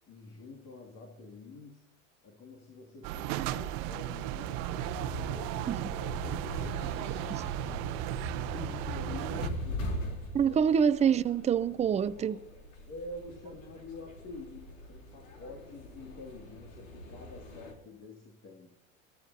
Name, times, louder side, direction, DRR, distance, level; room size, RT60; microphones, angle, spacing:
voice 1, 0.1-1.8 2.2-8.0 8.3-10.0 10.4-10.6 12.9-18.7, left 2 dB, 40° left, 2.6 m, -47 dB
sound 1, 3.0-9.5, right 13 dB, 55° right, 0.9 m, -35 dB
sound 2, 4.8-17.7, left 1 dB, 80° left, 3.7 m, -41 dB
voice 2, 10.3-12.4, right 7 dB, 15° right, 0.5 m, -26 dB
21.5 x 14.5 x 2.8 m
hypercardioid pair, 90°, 40 cm